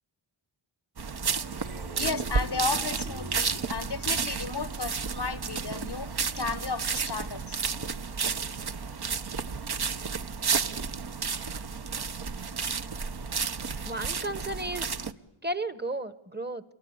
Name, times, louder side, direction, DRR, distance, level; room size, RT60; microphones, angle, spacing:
sound 1, 1.0-15.1, right 5 dB, 50° right, 0.9 m, -32 dB
sound 2, 1.5-5.5, right 3 dB, 75° right, 3.2 m, -44 dB
voice 1, 2.0-7.6, left 4 dB, 55° left, 1.0 m, -34 dB
voice 2, 13.8-15.0 15.4-16.6, right 2 dB, 20° right, 1.1 m, -33 dB
27.0 x 22.5 x 9.6 m
wide cardioid pair, 65°, 50 cm